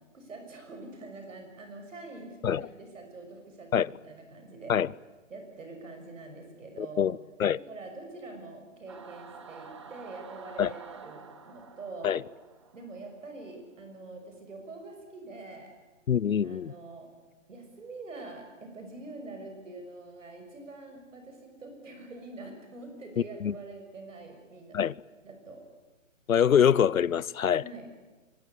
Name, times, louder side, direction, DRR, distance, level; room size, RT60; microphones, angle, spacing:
voice 1, 0.1-4.8 5.3-7.1 7.5-12.2 12.7-15.7 16.4-17.1 17.5-24.8 25.2-25.6 27.6-27.9, right 2 dB, 70° right, 6.5 m, -45 dB
voice 2, 6.8-7.6 10.6-10.7 12.0-12.2 16.1-16.7 23.4-23.5 24.7-24.9 26.3-27.6, left 8 dB, 85° left, 0.8 m, -24 dB
Singing / Musical instrument, 8.9-13.5, right 5 dB, 20° right, 1.0 m, -48 dB
26.0 x 23.0 x 8.3 m
hypercardioid pair, 175°, 40 cm